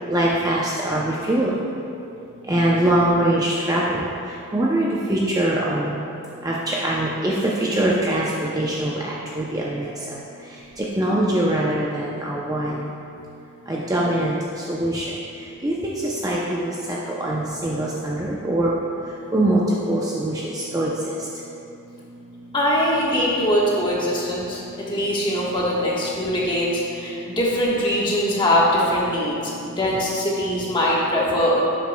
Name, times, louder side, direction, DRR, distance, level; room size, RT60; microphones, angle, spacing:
voice 1, 0.1-1.5 2.5-4.0 4.5-5.9 6.4-8.9 9.4-9.9 11.0-12.8 13.7-14.3 14.7-15.1 15.6-16.7 17.2-18.8 19.3-19.6 19.9-20.9, right 1 dB, 15° right, -5 dB, 0.5 m, -22 dB
voice 2, 22.5-29.4 29.8-31.6, equal, 20° left, -5 dB, 1.3 m, -22 dB
11.0 x 8.2 x 2.2 m, 2.7 s
head